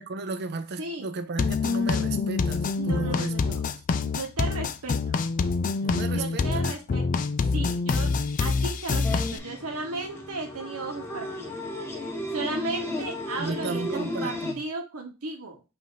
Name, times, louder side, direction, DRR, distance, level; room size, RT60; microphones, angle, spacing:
voice 1, 0.0-3.8 5.8-6.6 13.4-14.6, right 3 dB, 50° right, 0.5 m, -34 dB
voice 2, 0.8-1.2 2.7-3.6 4.0-5.2 6.1-8.1 8.4-11.6 12.3-15.6, right 3 dB, 90° right, 0.9 m, -35 dB
sound 1, 1.4-9.4, left 4 dB, 40° left, 0.3 m, -26 dB
sound 2, 9.0-14.5, left 1 dB, 10° left, 0.9 m, -34 dB
5.1 x 2.6 x 3.9 m
head